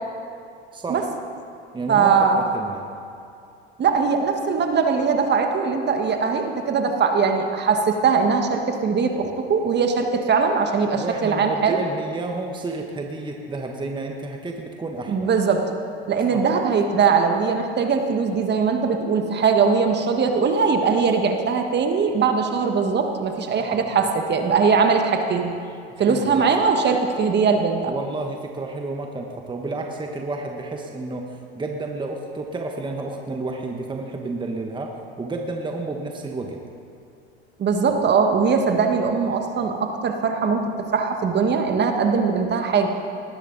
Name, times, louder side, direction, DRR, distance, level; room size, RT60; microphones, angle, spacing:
voice 1, 0.7-1.0 1.7-2.8 10.9-15.3 16.3-16.5 23.6-24.1 25.9-26.5 27.9-36.6, right 2 dB, 15° right, 2 dB, 1.3 m, -31 dB
voice 2, 1.9-2.4 3.8-11.8 15.1-15.7 16.1-25.5 26.0-27.9 37.6-42.9, right 5 dB, 35° right, 5 dB, 1.5 m, -21 dB
19.0 x 13.0 x 4.0 m, 2.5 s
hypercardioid pair, 95°, 31 cm